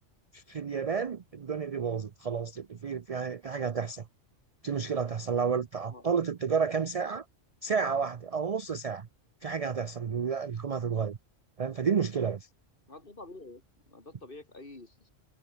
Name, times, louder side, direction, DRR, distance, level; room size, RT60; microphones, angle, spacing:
voice 1, 0.3-4.0 4.6-7.2 7.6-9.1 9.4-11.2 11.6-12.5, right 6 dB, 45° right, 0.5 m, -31 dB
voice 2, 12.9-15.1, left 2 dB, 45° left, 3.4 m, -48 dB
omnidirectional pair, 1.3 m